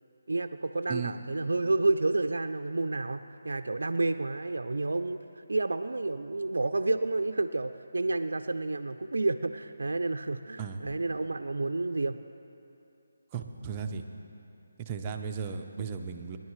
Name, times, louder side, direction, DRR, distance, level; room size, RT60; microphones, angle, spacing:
voice 1, 0.3-12.2, right 2 dB, 85° right, 8 dB, 0.5 m, -30 dB
voice 2, 13.3-14.0 14.8-16.4, right 6 dB, 25° right, 5 dB, 0.6 m, -35 dB
25.0 x 10.5 x 3.2 m, 2.7 s
figure-of-eight pair, 160°, 0 cm